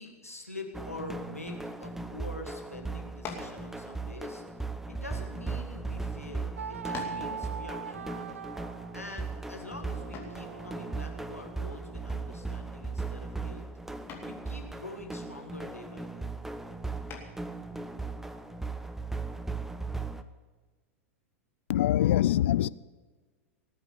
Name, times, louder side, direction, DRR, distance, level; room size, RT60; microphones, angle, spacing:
voice 1, 0.0-4.4 4.9-8.4 8.9-13.7 14.2-16.3, left 2 dB, 85° left, 1.8 m, -45 dB
sound 1, 0.7-20.2, right 3 dB, 5° right, 0.7 m, -38 dB
sound 2, 3.2-3.6 4.5-5.7 6.4-6.5 6.9-7.3 10.1-10.5 12.4-12.8 13.1-13.5 14.1-14.4 17.1-17.5, left 5 dB, 30° left, 2.6 m, -43 dB
sound 3, 6.6-12.4, right 7 dB, 70° right, 0.5 m, -43 dB
voice 2, 21.7-22.7, left 12 dB, 55° left, 0.4 m, -24 dB
19.0 x 8.2 x 6.9 m
figure-of-eight pair, 95°, 8 cm